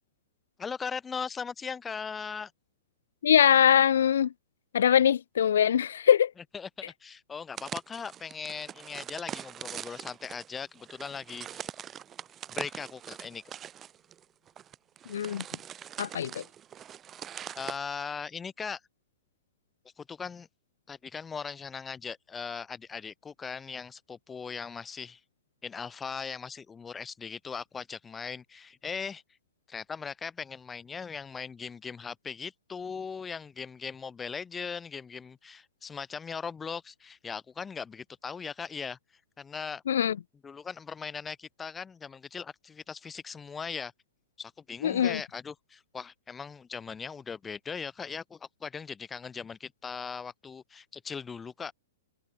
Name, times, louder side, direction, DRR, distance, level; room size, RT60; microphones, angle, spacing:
voice 1, 0.6-2.5 6.5-11.7 12.5-13.4 17.6-18.8 20.0-20.5 20.9-25.2 25.6-29.2 29.7-39.0 39.4-39.8 40.4-43.9 44.4-51.7, left 6 dB, 15° left, 4.2 m, -39 dB
voice 2, 3.2-4.3 4.7-6.3 15.1-15.4 16.0-16.4 39.9-40.2 44.8-45.2, left 9 dB, 75° left, 0.6 m, -22 dB
sound 1, 7.5-17.8, right 9 dB, 25° right, 4.0 m, -42 dB
hypercardioid pair, 125°, 0 cm